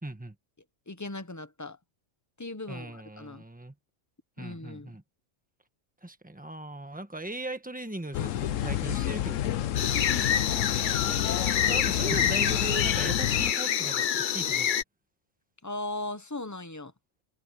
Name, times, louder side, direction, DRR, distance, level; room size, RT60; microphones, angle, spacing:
voice 1, 0.0-0.3 2.7-3.7 4.4-5.0 6.0-9.7 11.4-14.7, right 1 dB, 5° right, 1.3 m, -39 dB
voice 2, 0.9-1.8 2.4-3.4 4.4-4.9 9.7-10.4 12.1-12.2 15.6-16.9, left 2 dB, 15° left, 0.8 m, -38 dB
sound 1, 8.1-13.5, left 12 dB, 85° left, 1.1 m, -30 dB
sound 2, 9.8-14.8, left 9 dB, 50° left, 0.6 m, -27 dB
omnidirectional pair, 1.3 m